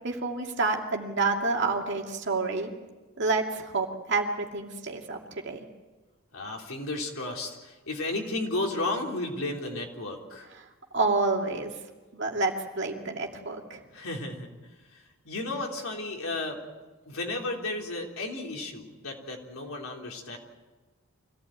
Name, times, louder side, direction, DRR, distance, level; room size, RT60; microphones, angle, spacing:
voice 1, 0.0-2.7 3.2-5.6 10.9-11.7 12.1-13.8, right 3 dB, 55° right, 1 dB, 2.5 m, -28 dB
voice 2, 6.3-10.5 13.9-14.5 14.9-16.6 17.0-20.4, left 2 dB, 75° left, 1 dB, 3.5 m, -33 dB
25.0 x 16.0 x 8.9 m, 1.2 s
head